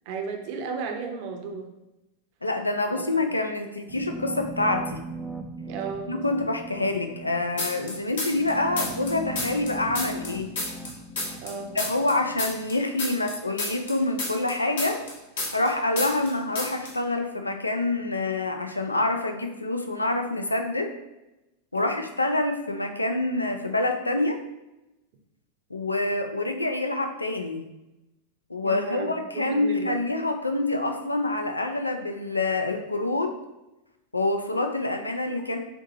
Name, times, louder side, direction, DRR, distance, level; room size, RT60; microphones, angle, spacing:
voice 1, 0.1-1.7 3.0-3.2 5.7-6.1 11.4-11.8 21.7-22.0 28.6-30.0, right 5 dB, 45° right, 3 dB, 0.7 m, -34 dB
voice 2, 2.4-5.0 6.1-10.5 11.7-15.0 15.5-20.9 21.7-24.4 25.7-27.6 28.5-33.3 34.1-35.6, left 2 dB, 80° left, 5 dB, 0.4 m, -26 dB
sound 1, 3.9-12.8, right 2 dB, 5° right, 0.4 m, -39 dB
sound 2, 7.6-8.5 8.8-11.5 11.8-15.7 16.0-16.3 16.6-16.9, left 2 dB, 60° left, 1.2 m, -30 dB
6.8 x 2.7 x 2.8 m, 0.97 s
figure-of-eight pair, 90°, 0 cm